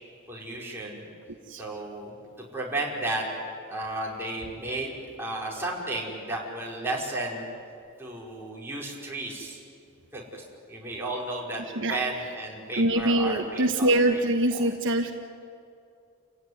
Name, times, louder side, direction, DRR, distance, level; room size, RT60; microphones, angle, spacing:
voice 1, 0.3-1.0 1.6-3.3 3.7-7.4 8.0-9.6 10.1-11.6 11.9-14.2 14.6-14.7, right 2 dB, 10° right, -4 dB, 5.0 m, -33 dB
voice 2, 12.7-15.1, right 1 dB, 60° right, 5 dB, 1.3 m, -24 dB
29.5 x 16.5 x 9.7 m, 2.5 s
head